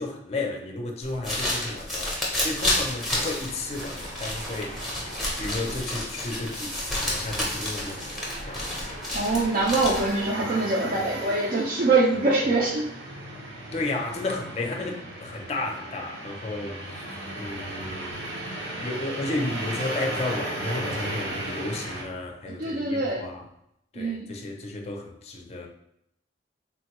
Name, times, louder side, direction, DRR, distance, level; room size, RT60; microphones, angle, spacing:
voice 1, 0.0-4.8 5.1-6.7 7.0-8.1 8.5-8.7 13.7-18.3 18.8-23.4 23.9-25.7, left 2 dB, 35° left, 0.5 m, -33 dB
sound 1, 1.0-10.3, left 1 dB, ahead, 0.7 m, -30 dB
sound 2, 2.2-22.0, right 1 dB, 75° right, 0.8 m, -37 dB
voice 2, 9.1-12.9 22.5-23.2 24.0-24.3, right 3 dB, 50° right, 0.5 m, -24 dB
3.5 x 2.2 x 2.8 m
head